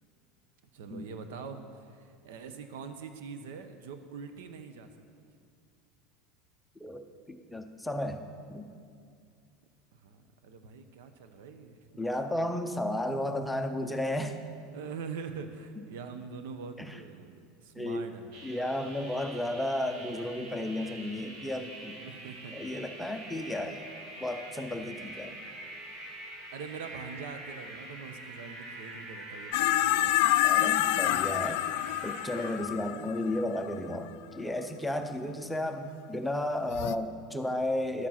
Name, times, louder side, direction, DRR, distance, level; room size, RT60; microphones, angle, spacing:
voice 1, 0.7-4.9 9.9-11.8 14.7-18.3 22.0-22.6 26.5-30.3 35.2-35.4, right 5 dB, 75° right, 8 dB, 0.8 m, -43 dB
voice 2, 7.3-8.7 12.0-14.4 15.8-15.9 16.8-17.0 17.8-18.0 18.4-22.0 22.5-23.9 24.2-25.3 30.4-31.6 32.0-38.1, left 1 dB, 5° left, 5 dB, 0.6 m, -33 dB
sound 1, 18.3-32.6, right 1 dB, 55° right, 1.7 m, -45 dB
sound 2, 29.5-34.0 36.7-37.0, left 14 dB, 65° left, 0.3 m, -27 dB
11.0 x 7.3 x 5.8 m, 2.3 s
supercardioid pair, 160°, 0 cm